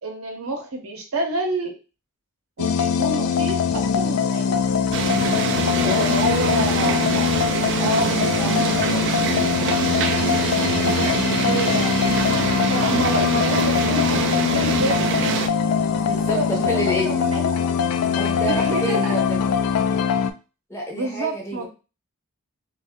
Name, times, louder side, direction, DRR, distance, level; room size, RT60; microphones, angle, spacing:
voice 1, 0.0-1.7 2.6-4.6 5.8-7.4 7.8-8.1 10.6-12.0 12.3-15.2 16.3-17.5 18.5-19.1 20.9-21.7, right 2 dB, 70° right, 2 dB, 0.8 m, -28 dB
sound 1, 2.6-20.3, left 7 dB, 80° left, 0.3 m, -22 dB
sound 2, 4.9-15.5, right 6 dB, 55° right, 0.3 m, -25 dB
voice 2, 5.7-6.1 8.0-9.1 16.0-17.2 18.2-19.4 20.7-21.7, equal, 10° left, -1 dB, 0.6 m, -29 dB
2.5 x 2.2 x 3.5 m, 0.31 s
head